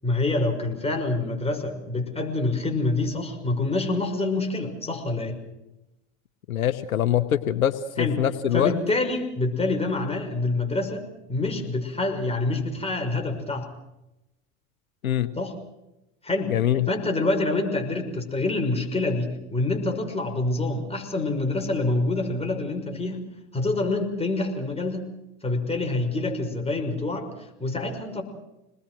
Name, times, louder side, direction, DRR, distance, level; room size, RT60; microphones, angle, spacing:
voice 1, 0.0-5.4 8.0-8.2 8.5-13.7 15.4-15.5 16.2-16.5 16.9-23.3 23.5-25.1 25.4-28.2, left 2 dB, 15° left, 3 dB, 5.9 m, -26 dB
voice 2, 6.5-8.7 15.0-15.3 16.5-16.9, left 11 dB, 85° left, 12 dB, 1.1 m, -23 dB
27.0 x 20.0 x 6.3 m, 0.94 s
hypercardioid pair, 80°, 41 cm